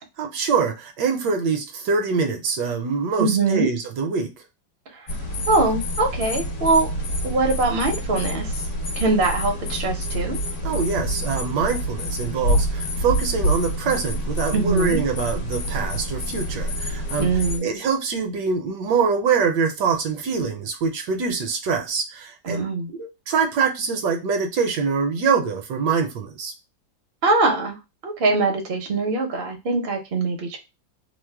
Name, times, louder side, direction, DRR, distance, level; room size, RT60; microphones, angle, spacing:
voice 1, 0.2-4.3 10.6-17.3 17.6-26.5, right 5 dB, 75° right, 5 dB, 1.1 m, -24 dB
voice 2, 3.2-3.7 5.5-6.9 7.2-8.5 9.0-10.4 14.5-15.0 17.2-17.7 22.4-22.9 27.2-27.8 28.0-30.6, right 3 dB, 55° right, 2 dB, 0.6 m, -22 dB
sound 1, 5.1-17.6, equal, 55° left, 1.1 m, -27 dB
3.0 x 2.0 x 3.3 m, 0.25 s
omnidirectional pair, 2.0 m